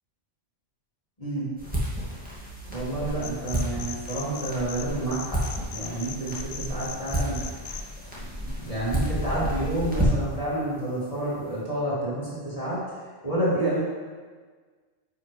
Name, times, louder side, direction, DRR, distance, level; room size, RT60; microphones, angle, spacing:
sound 1, 1.6-10.4, equal, 5° right, 2.0 m, -31 dB
voice 1, 2.7-5.4 5.7-7.4 8.6-12.8 13.2-13.8, right 1 dB, 30° left, -8 dB, 2.2 m, -29 dB
sound 2, 3.2-4.8 5.1-7.8, left 8 dB, 80° left, 0.9 m, -38 dB
10.0 x 5.7 x 3.3 m, 1.5 s
omnidirectional pair, 1.3 m